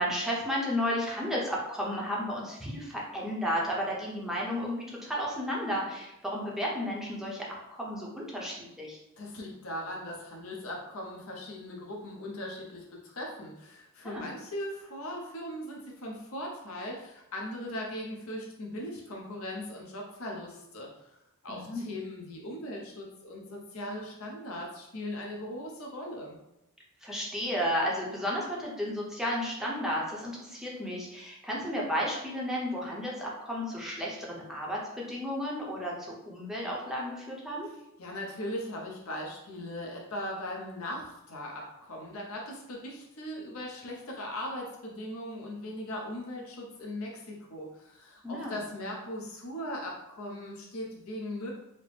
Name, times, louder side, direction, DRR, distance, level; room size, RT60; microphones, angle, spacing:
voice 1, 0.0-9.0 14.0-14.2 21.5-21.9 27.0-37.7 48.2-48.6, equal, ahead, -4 dB, 0.7 m, -33 dB
voice 2, 9.2-20.9 21.4-26.4 38.0-51.5, left 1 dB, 65° left, -1 dB, 0.7 m, -39 dB
4.2 x 2.0 x 3.2 m, 0.87 s
head